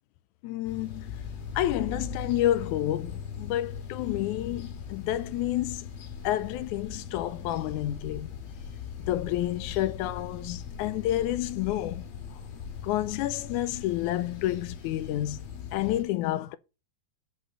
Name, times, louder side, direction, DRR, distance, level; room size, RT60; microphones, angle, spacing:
voice 1, 0.4-1.1 1.6-5.9 6.2-8.3 9.1-12.1 12.8-15.4 15.7-16.6, left 14 dB, 80° left, 1.9 m, -29 dB
sound 1, 0.6-16.0, left 6 dB, 60° left, 2.6 m, -40 dB
6.2 x 5.8 x 6.7 m
omnidirectional pair, 3.7 m